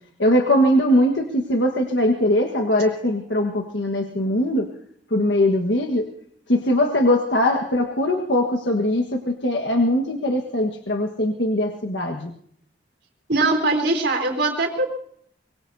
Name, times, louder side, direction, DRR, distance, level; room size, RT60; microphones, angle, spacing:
voice 1, 0.2-4.7 5.1-6.1 6.5-12.3, left 1 dB, 80° left, 3 dB, 1.5 m, -21 dB
voice 2, 13.3-14.9, right 2 dB, 70° right, 3 dB, 3.8 m, -21 dB
24.5 x 21.5 x 2.8 m, 0.63 s
head